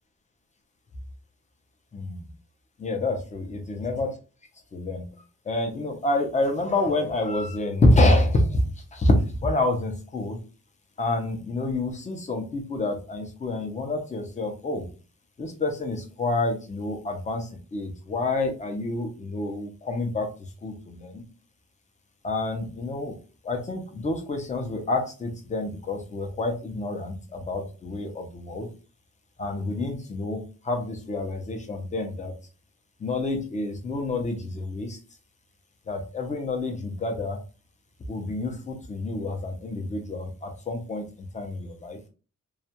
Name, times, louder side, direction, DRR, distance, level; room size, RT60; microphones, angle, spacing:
voice 1, 2.8-4.2 4.7-5.2 5.4-10.4 11.0-14.9 15.4-21.2 22.2-23.2 23.4-28.7 29.4-32.3 33.0-35.0 35.9-37.4 38.1-42.0, left 2 dB, 25° left, 4 dB, 0.5 m, -27 dB
2.3 x 2.2 x 2.8 m, 0.35 s
wide cardioid pair, 130°, 30 cm